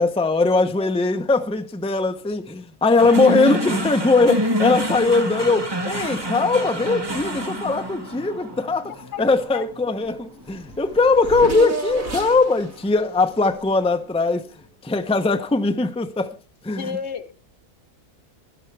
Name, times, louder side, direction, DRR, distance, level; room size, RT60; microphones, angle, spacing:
voice 1, 0.0-8.9 9.2-14.5 14.8-16.3 16.6-16.9, left 3 dB, 5° left, 0.7 m, -20 dB
sound 1, 3.0-11.4, equal, 20° right, 1.3 m, -27 dB
voice 2, 3.1-3.5 9.1-9.3 9.5-9.7 16.8-17.3, left 6 dB, 60° left, 1.3 m, -32 dB
Race car auto racing / Accelerating revving vroom, 10.1-10.2 10.4-14.4, right 3 dB, 85° right, 4.4 m, -33 dB
18.5 x 12.0 x 3.4 m
omnidirectional pair, 1.4 m